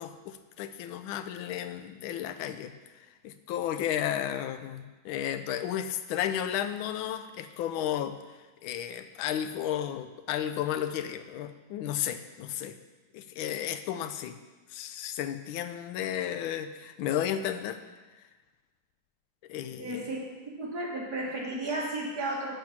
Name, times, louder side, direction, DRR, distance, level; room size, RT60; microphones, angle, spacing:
voice 1, 0.0-2.7 3.2-12.8 13.1-14.4 14.7-17.8 19.5-20.1, left 10 dB, 80° left, 10 dB, 1.4 m, -33 dB
voice 2, 19.8-20.2 20.6-22.5, right 2 dB, 50° right, -2 dB, 2.1 m, -33 dB
10.5 x 5.9 x 5.9 m, 1.3 s
omnidirectional pair, 2.3 m